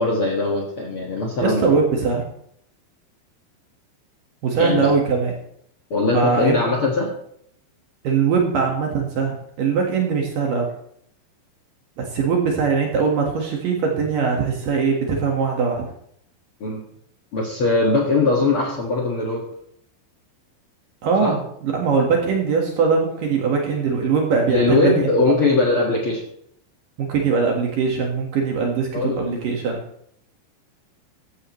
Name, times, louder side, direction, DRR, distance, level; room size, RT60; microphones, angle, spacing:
voice 1, 0.0-1.7 4.6-4.9 5.9-7.1 16.6-16.8 17.3-19.4 21.2-21.4 24.5-26.2 28.9-29.2, left 3 dB, 50° left, -1 dB, 1.6 m, -20 dB
voice 2, 1.4-2.2 4.4-5.3 6.1-6.6 8.0-10.7 12.0-15.9 21.0-25.1 27.0-29.8, right 5 dB, 60° right, 0 dB, 2.8 m, -21 dB
15.0 x 11.5 x 3.2 m, 0.69 s
omnidirectional pair, 5.2 m